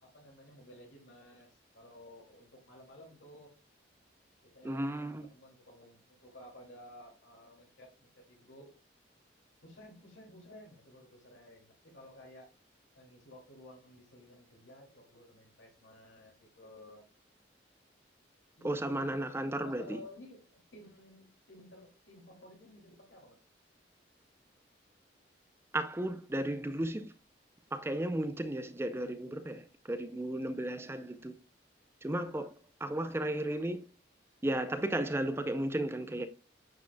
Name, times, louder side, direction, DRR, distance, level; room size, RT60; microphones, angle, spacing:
voice 1, 0.0-3.5 4.4-8.7 9.6-12.5 12.9-17.1 18.6-19.2 19.6-23.4 32.8-33.5, left 1 dB, 85° left, 2.5 m, -54 dB
voice 2, 4.6-5.3 18.6-20.0 25.7-27.1 27.7-31.3 32.0-32.5 32.8-33.8 34.4-36.3, right 1 dB, 15° right, 0.4 m, -34 dB
9.3 x 5.1 x 2.2 m
head